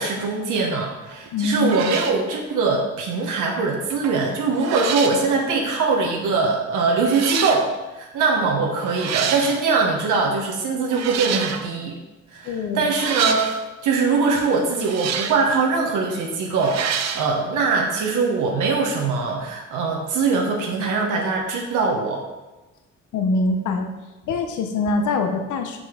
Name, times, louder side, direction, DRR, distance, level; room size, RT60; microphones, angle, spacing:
voice 1, 0.0-12.0 12.3-13.5 13.8-22.3, right 4 dB, 85° right, 0 dB, 1.0 m, -22 dB
sound 1, 1.1-1.3 1.6-2.2 3.9-4.2 4.5-5.2 6.2-6.3 7.0-7.6 8.8-9.6 10.9-11.7 12.9-13.6 14.7-15.5 16.6-17.3, right 7 dB, 60° right, 0.6 m, -27 dB
voice 2, 1.3-1.9 12.4-12.9 23.1-23.9 24.3-25.8, left 3 dB, 75° left, 5 dB, 0.7 m, -23 dB
6.1 x 5.2 x 3.6 m, 1.1 s
cardioid pair, 90°, 30 cm